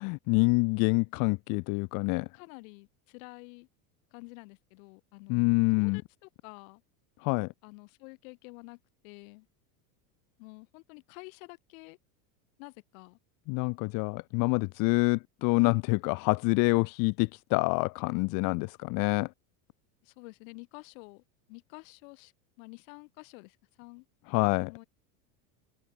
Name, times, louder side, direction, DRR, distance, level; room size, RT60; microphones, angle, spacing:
voice 1, 0.0-2.3 5.3-6.0 7.2-7.5 13.5-19.3 24.3-24.7, left 30 dB, 50° left, 0.7 m, -27 dB
voice 2, 2.3-3.7 4.1-5.4 5.7-6.8 7.6-9.5 10.4-12.0 12.6-13.2 20.0-22.3 22.6-24.1 24.3-24.9, left 29 dB, 65° left, 4.8 m, -49 dB
supercardioid pair, 130°, 43 cm